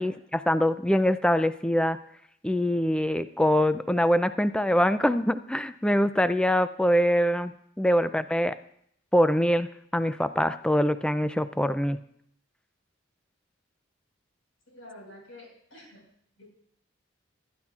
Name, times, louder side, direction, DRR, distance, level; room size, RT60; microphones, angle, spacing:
voice 1, 0.0-2.0 2.4-8.5 9.1-12.0, equal, 5° left, 12 dB, 0.3 m, -24 dB
voice 2, 14.7-16.1 16.4-16.5, left 1 dB, 80° left, -2 dB, 5.0 m, -48 dB
22.5 x 10.5 x 2.4 m, 0.68 s
head